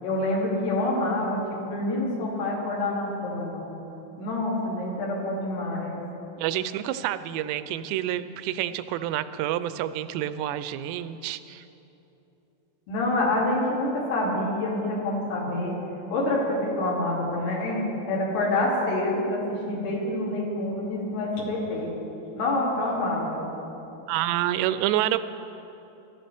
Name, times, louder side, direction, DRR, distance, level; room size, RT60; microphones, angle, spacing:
voice 1, 0.0-3.6 4.2-6.0 12.9-15.7 16.1-21.9 22.4-23.4, left 1 dB, 70° left, -5 dB, 4.5 m, -27 dB
voice 2, 6.4-11.6 24.1-25.2, right 13 dB, 85° right, 13 dB, 2.7 m, -28 dB
22.5 x 13.5 x 3.5 m, 3.0 s
omnidirectional pair, 5.0 m